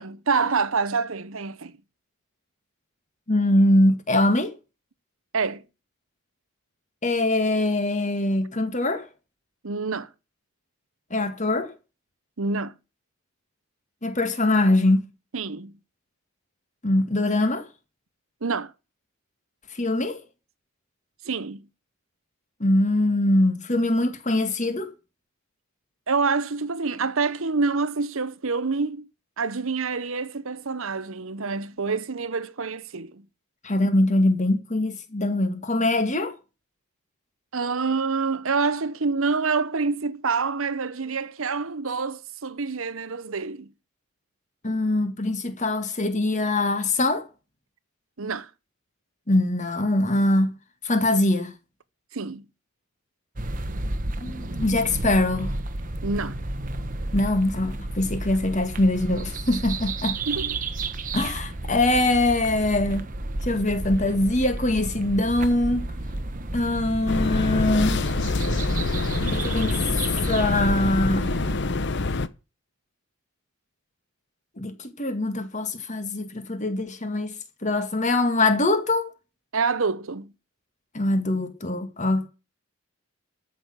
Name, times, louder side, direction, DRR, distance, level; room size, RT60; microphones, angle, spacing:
voice 1, 0.0-1.7 5.3-5.6 9.6-10.1 12.4-12.7 15.3-15.8 18.4-18.7 21.2-21.7 26.1-29.1 29.4-33.3 37.5-43.7 44.7-44.8 48.2-48.5 52.1-52.5 56.0-56.4 60.3-60.6 79.5-80.3, right 4 dB, 65° right, 0.9 m, -27 dB
voice 2, 3.3-4.5 7.0-9.1 11.1-11.7 14.0-15.1 16.8-17.6 19.7-20.2 22.6-24.9 33.6-36.3 44.6-47.3 49.3-50.6 50.8-51.5 54.2-55.5 57.1-60.2 61.1-63.0 63.4-65.8 66.5-68.0 69.3-69.8 70.2-71.3 74.6-77.3 77.6-79.1 80.9-82.3, left 2 dB, 35° left, 2.0 m, -23 dB
sound 1, 53.4-71.5, right 2 dB, 40° right, 1.2 m, -32 dB
sound 2, 67.1-72.3, left 3 dB, 55° left, 0.9 m, -26 dB
13.5 x 6.4 x 7.5 m
head